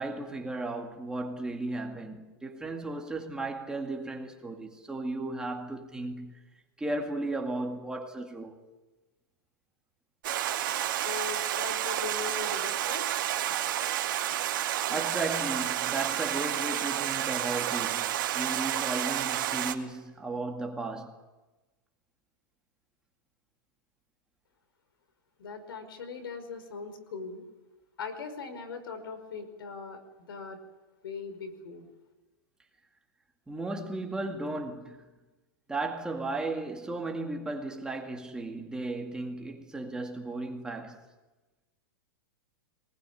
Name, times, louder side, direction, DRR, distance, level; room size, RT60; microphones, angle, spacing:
voice 1, 0.0-6.4 6.8-8.6 14.9-21.2 33.5-35.0 35.7-41.0, right 2 dB, 5° right, 2.1 m, -35 dB
Stream, 10.2-19.7, right 12 dB, 65° right, 2.5 m, -30 dB
voice 2, 11.0-13.1 25.4-27.4 28.0-30.0 30.3-30.6 31.0-31.8, left 5 dB, 85° left, 5.3 m, -40 dB
24.5 x 20.0 x 9.7 m
supercardioid pair, 150°, 12 cm